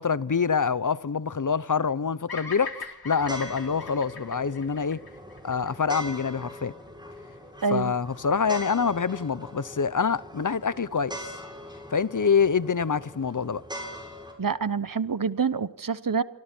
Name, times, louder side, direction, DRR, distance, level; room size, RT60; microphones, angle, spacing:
voice 1, 0.0-5.0 5.4-6.7 7.7-11.3 11.9-13.6, left 6 dB, 60° left, 0.8 m, -26 dB
Bird vocalization bird call bird song, 2.3-6.6, left 4 dB, 90° left, 2.7 m, -41 dB
sound 1, 3.2-14.3, equal, 10° right, 6.9 m, -41 dB
voice 2, 7.6-7.9 14.4-16.2, right 5 dB, 65° right, 1.0 m, -26 dB
27.0 x 24.0 x 4.5 m
wide cardioid pair, 55°, 35 cm